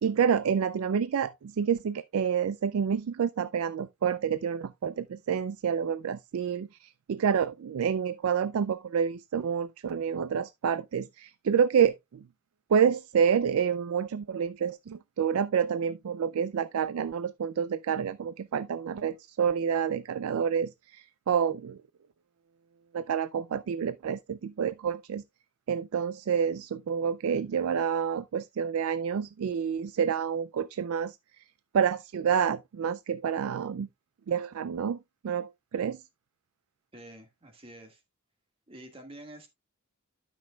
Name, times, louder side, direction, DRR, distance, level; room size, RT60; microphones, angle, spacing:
voice 1, 0.0-12.2 12.7-21.8 22.9-25.2 25.7-31.2 31.7-33.9 34.3-35.0 35.2-36.0, right 7 dB, 70° right, 0.4 m, -28 dB
voice 2, 36.9-38.0 38.7-39.5, right 1 dB, 25° right, 1.7 m, -48 dB
12.0 x 6.2 x 2.3 m
head